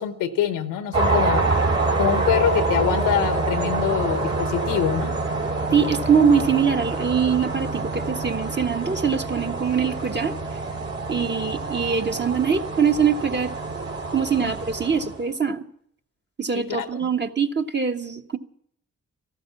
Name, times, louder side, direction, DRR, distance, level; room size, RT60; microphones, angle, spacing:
voice 1, 0.0-1.4 2.0-5.1 14.4-14.5 16.5-17.1, left 10 dB, 85° left, 11 dB, 1.0 m, -25 dB
sound 1, 0.9-15.2, right 3 dB, 55° right, 3.3 m, -26 dB
voice 2, 5.7-10.4 11.1-13.5 14.1-15.6 16.4-18.4, right 6 dB, 35° right, 5 dB, 1.3 m, -23 dB
14.0 x 12.5 x 7.1 m, 0.69 s
supercardioid pair, 45°, 33 cm